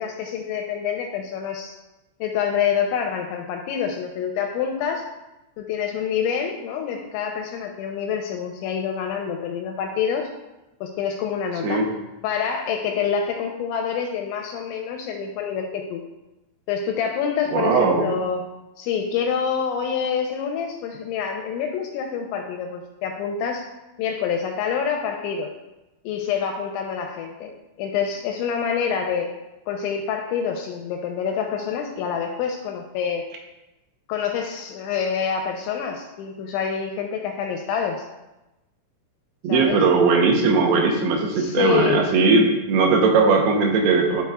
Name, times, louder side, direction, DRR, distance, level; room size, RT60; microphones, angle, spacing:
voice 1, 0.0-1.8 2.2-5.1 5.6-10.3 10.8-11.9 12.2-16.0 16.7-18.4 18.8-23.7 24.0-25.5 26.0-29.3 29.7-33.3 34.1-38.0 39.5-39.8 41.3-42.1, left 7 dB, 85° left, 4 dB, 2.8 m, -26 dB
voice 2, 17.5-18.1 39.4-44.2, right 4 dB, 80° right, 0 dB, 2.4 m, -19 dB
12.0 x 4.7 x 2.3 m, 0.99 s
omnidirectional pair, 5.6 m